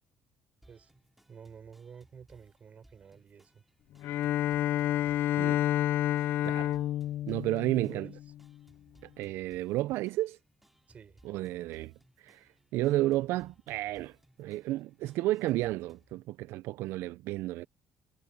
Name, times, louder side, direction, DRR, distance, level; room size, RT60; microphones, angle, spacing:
sound 1, 0.6-16.2, right 1 dB, 5° right, 2.6 m, -64 dB
voice 1, 1.3-3.6 7.5-8.1 10.9-11.2, right 7 dB, 35° right, 5.6 m, -50 dB
Bowed string instrument, 4.0-8.4, left 13 dB, 65° left, 0.4 m, -29 dB
voice 2, 6.1-6.7 7.3-8.1 9.0-10.4 11.2-11.9 12.2-17.7, right 16 dB, 80° right, 0.4 m, -32 dB
cardioid pair, 135°, 4 cm